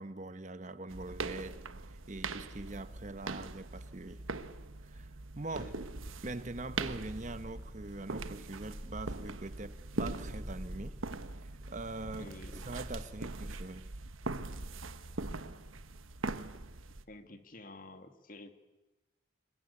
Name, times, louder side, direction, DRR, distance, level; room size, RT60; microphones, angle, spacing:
voice 1, 0.0-4.2 4.8-5.1 5.4-5.7 6.2-11.0 11.4-13.9, right 2 dB, 35° right, 0.9 m, -43 dB
sound 1, 0.9-17.1, right 3 dB, 85° right, 1.2 m, -42 dB
sound 2, 6.2-13.0, equal, 10° right, 4.3 m, -49 dB
voice 2, 12.2-12.5 17.1-18.5, left 2 dB, 45° left, 2.2 m, -50 dB
27.5 x 22.5 x 8.4 m
head